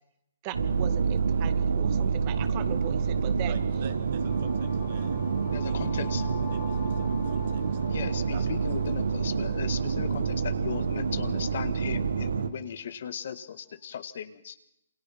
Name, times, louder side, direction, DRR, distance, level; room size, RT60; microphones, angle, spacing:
voice 1, 0.4-3.6, right 13 dB, 40° right, 11 dB, 2.2 m, -39 dB
sound 1, 0.5-12.5, right 5 dB, 75° right, 2.3 m, -28 dB
voice 2, 3.4-5.2 5.6-7.6 8.3-8.4, right 8 dB, 55° right, 6 dB, 3.6 m, -45 dB
sound 2, 3.8-11.7, left 14 dB, 40° left, 2.5 m, -48 dB
voice 3, 5.5-6.2 7.9-14.6, left 8 dB, 60° left, 11 dB, 2.0 m, -37 dB
28.0 x 28.0 x 6.1 m, 0.84 s
figure-of-eight pair, 125°, 0 cm